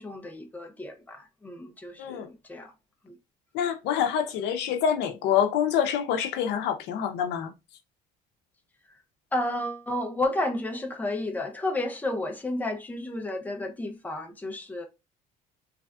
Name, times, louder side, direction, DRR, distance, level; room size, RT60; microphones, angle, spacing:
voice 1, 0.0-2.7 3.0-3.1 9.3-14.9, left 1 dB, 10° left, 0.5 m, -32 dB
voice 2, 3.5-7.5, left 8 dB, 85° left, 0.6 m, -26 dB
3.3 x 2.4 x 2.2 m
cardioid pair, 110°, 17 cm